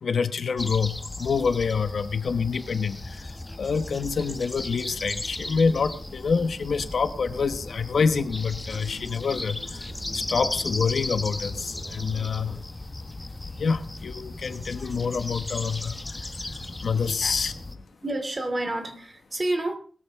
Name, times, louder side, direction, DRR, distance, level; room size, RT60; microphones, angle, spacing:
voice 1, 0.0-12.6 13.6-17.5, left 5 dB, 60° left, 1.2 m, -27 dB
sound 1, 0.6-17.7, left 2 dB, 15° left, 1.1 m, -36 dB
sound 2, 2.2-12.6, right 1 dB, 10° right, 2.8 m, -47 dB
sound 3, 10.3-17.8, left 3 dB, 35° left, 2.2 m, -46 dB
voice 2, 18.0-19.8, right 2 dB, 30° right, 2.8 m, -29 dB
20.5 x 13.5 x 3.7 m
wide cardioid pair, 150°, 0 cm